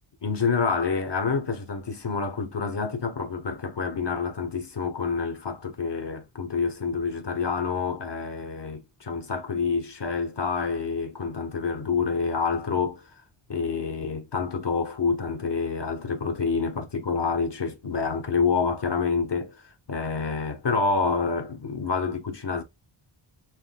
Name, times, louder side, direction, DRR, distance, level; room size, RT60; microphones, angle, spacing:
voice 1, 0.2-13.0 13.5-22.6, left 5 dB, 55° left, 1.3 m, -27 dB
6.4 x 2.8 x 2.3 m
wide cardioid pair, 80°, 50 cm